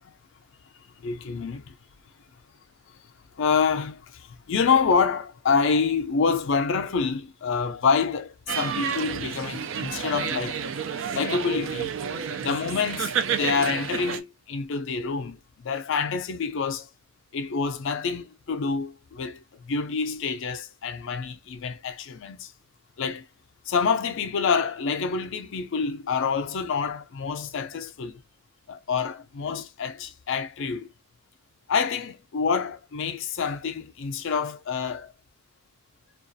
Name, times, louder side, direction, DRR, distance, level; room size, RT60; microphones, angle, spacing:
voice 1, 1.0-1.8 3.4-10.6 11.1-11.9 12.4-16.9 17.3-22.5 23.0-23.2 23.7-28.2 28.7-30.9 31.7-35.1, left 5 dB, 55° left, 0.4 m, -27 dB
sound 1, 8.5-14.2, right 7 dB, 60° right, 0.3 m, -30 dB
2.3 x 2.3 x 2.5 m
head